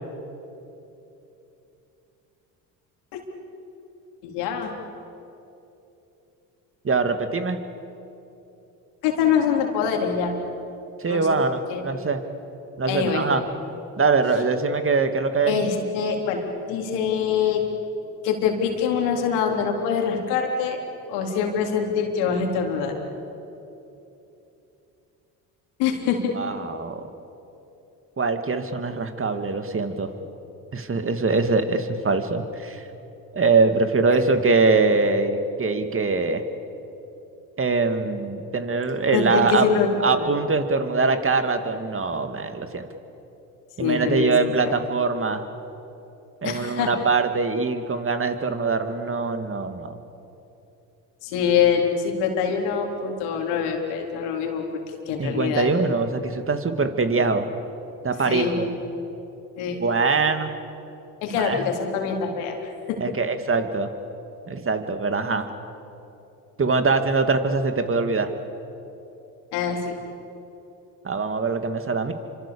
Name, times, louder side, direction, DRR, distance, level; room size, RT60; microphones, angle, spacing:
voice 1, 4.2-4.7 9.0-10.3 11.1-11.3 11.7-12.0 12.9-13.3 15.5-17.6 18.2-20.8 21.1-22.9 25.8-26.3 39.1-40.3 43.8-44.3 44.6-44.7 46.4-46.9 51.2-54.8 55.1-55.7 58.3-58.6 59.6-59.8 61.2-63.0 69.5-70.0, left 7 dB, 80° left, 2 dB, 3.8 m, -24 dB
voice 2, 6.8-7.6 11.0-12.2 12.8-13.4 14.0-15.6 26.3-27.1 28.2-30.1 30.7-32.8 33.3-36.4 37.6-39.7 40.0-42.9 43.8-45.4 46.4-49.9 55.2-57.5 58.0-58.7 59.8-60.5 61.3-61.6 63.0-63.9 64.5-65.5 66.6-68.3 71.0-72.1, right 4 dB, 30° right, 7 dB, 2.5 m, -23 dB
29.0 x 25.5 x 7.1 m, 3.0 s
hypercardioid pair, 65°, 41 cm